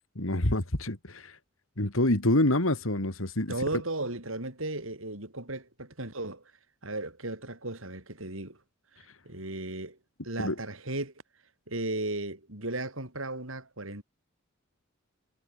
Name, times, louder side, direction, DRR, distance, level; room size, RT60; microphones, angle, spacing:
voice 1, 0.1-1.4 1.8-3.5 10.4-10.5, left 1 dB, 75° left, 3.2 m, -26 dB
voice 2, 3.5-6.4 6.8-8.6 9.3-10.0 10.2-11.1 11.7-14.0, right 2 dB, 75° right, 7.2 m, -35 dB
head